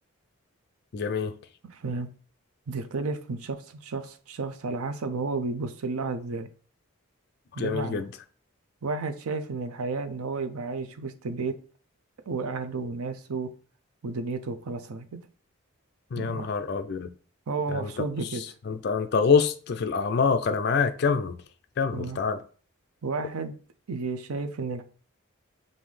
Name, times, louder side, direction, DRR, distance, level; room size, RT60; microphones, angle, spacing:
voice 1, 0.9-1.3 7.6-8.1 16.1-17.1 17.7-17.9 18.7-21.4 21.8-22.4, left 5 dB, 50° left, 0.4 m, -25 dB
voice 2, 1.7-2.1 2.7-6.5 7.5-8.1 8.8-11.5 12.3-13.5 14.0-15.2 16.1-16.5 17.5-18.4 21.9-22.2 23.0-23.5 23.9-24.8, right 4 dB, 85° right, 0.5 m, -32 dB
5.4 x 2.6 x 3.2 m
head